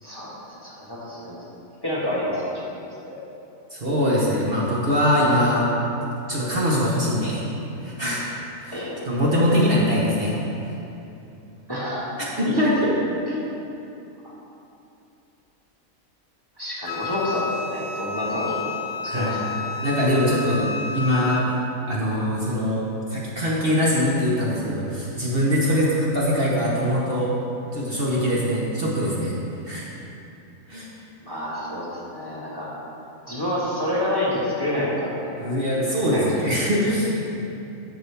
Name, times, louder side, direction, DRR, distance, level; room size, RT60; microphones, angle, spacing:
voice 1, 0.0-1.4 1.8-2.6 3.1-3.2 8.7-9.0 11.7-12.0 12.4-12.6 14.2-14.3 16.6-18.7 19.0-19.7 31.2-32.7 33.3-36.4, left 1 dB, 15° left, -8 dB, 1.5 m, -28 dB
voice 2, 3.7-5.7 6.3-7.5 7.8-8.2 8.6-10.4 10.6-10.7 12.2-12.9 13.3-13.4 19.0-19.4 19.8-21.6 21.9-27.3 27.7-29.4 29.6-29.9 30.7-30.9 35.4-37.2, equal, 45° right, -6 dB, 1.4 m, -22 dB
Wind instrument woodwind instrument, 16.9-21.5, left 4 dB, 65° left, 0.4 m, -31 dB
11.0 x 7.0 x 3.5 m, 2.8 s
omnidirectional pair, 1.5 m